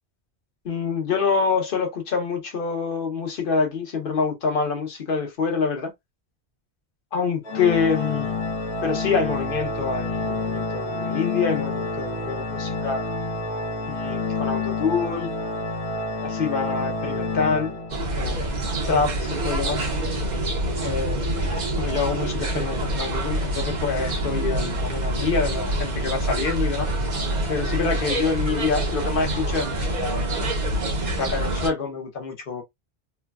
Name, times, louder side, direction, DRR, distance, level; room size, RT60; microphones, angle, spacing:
voice 1, 0.6-5.9 7.1-8.3 8.8-13.0 13.9-15.3 16.2-17.7 18.1-18.4 18.9-19.8 20.8-21.2 21.8-26.9 27.5-30.5 31.2-32.6, left 5 dB, 55° left, 1.1 m, -26 dB
Organ, 7.4-18.3, left 3 dB, 80° left, 1.0 m, -28 dB
sound 1, 17.9-31.7, right 1 dB, 45° right, 0.8 m, -26 dB
3.2 x 2.2 x 2.3 m
omnidirectional pair, 1.1 m